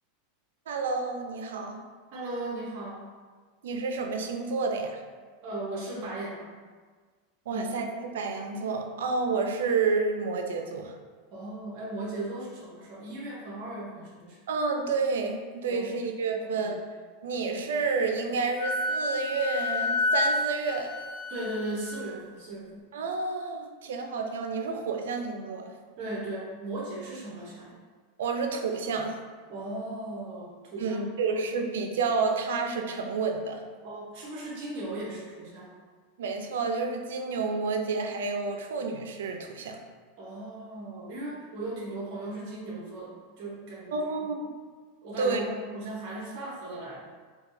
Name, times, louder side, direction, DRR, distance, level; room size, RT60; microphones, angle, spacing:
voice 1, 0.7-1.8 3.6-5.0 7.5-7.8 8.1-10.9 14.5-16.8 17.2-21.0 22.9-25.7 28.2-29.1 30.8-33.6 36.2-39.8 43.9-44.5 45.2-45.4, right 4 dB, 90° right, 4 dB, 0.4 m, -30 dB
voice 2, 2.1-3.1 5.4-6.6 7.5-7.8 11.3-14.4 15.7-16.0 16.3-16.7 21.3-22.8 26.0-27.7 29.5-31.0 31.3-31.4 33.8-35.7 40.2-44.1 45.0-47.0, right 2 dB, 50° right, -5 dB, 0.9 m, -37 dB
Wind instrument woodwind instrument, 18.6-22.0, left 2 dB, 55° left, 0.5 m, -29 dB
4.6 x 2.3 x 2.6 m, 1.5 s
supercardioid pair, 140°, 0 cm